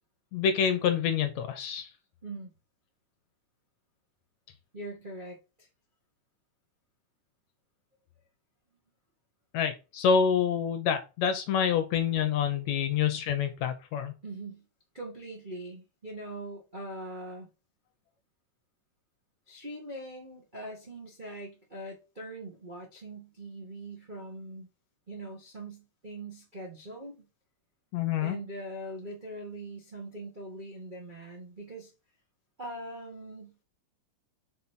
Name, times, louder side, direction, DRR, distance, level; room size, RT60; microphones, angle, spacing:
voice 1, 0.3-1.9 9.5-14.1 27.9-28.4, left 7 dB, 70° left, 1.8 m, -27 dB
voice 2, 4.7-5.7 14.2-14.6 14.9-17.5 19.5-24.7 25.1-27.2 28.2-31.9 32.6-33.6, right 1 dB, 65° right, 0.4 m, -42 dB
5.5 x 4.2 x 4.4 m
omnidirectional pair, 3.8 m